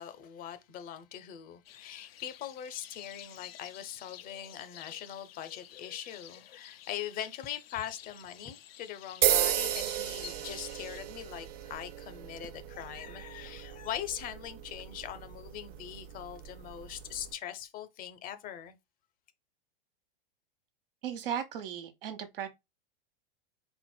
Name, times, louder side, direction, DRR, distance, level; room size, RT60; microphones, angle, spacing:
voice 1, 0.0-18.7, left 10 dB, 30° left, 0.6 m, -41 dB
sound 1, 1.7-11.0, left 12 dB, 80° left, 0.6 m, -51 dB
sound 2, 9.2-17.3, right 12 dB, 35° right, 0.4 m, -34 dB
voice 2, 21.0-22.5, right 9 dB, 70° right, 1.2 m, -36 dB
4.4 x 4.1 x 2.2 m
hypercardioid pair, 120°, 29 cm